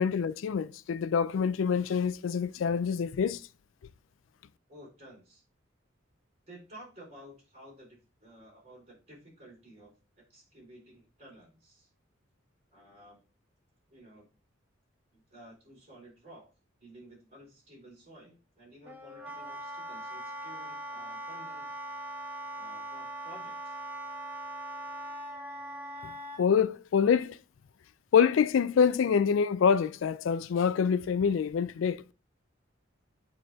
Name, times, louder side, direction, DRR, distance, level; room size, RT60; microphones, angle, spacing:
voice 1, 0.0-3.4 26.4-27.4 28.1-32.0, left 6 dB, 80° left, 0.4 m, -26 dB
voice 2, 4.7-5.4 6.5-9.9 10.3-11.9 12.7-13.2 13.9-14.3 15.1-16.5 16.8-21.7 22.5-23.8, right 1 dB, 35° right, 4.1 m, -53 dB
Wind instrument woodwind instrument, 18.9-26.4, right 1 dB, 10° right, 1.2 m, -41 dB
8.5 x 4.1 x 3.5 m
head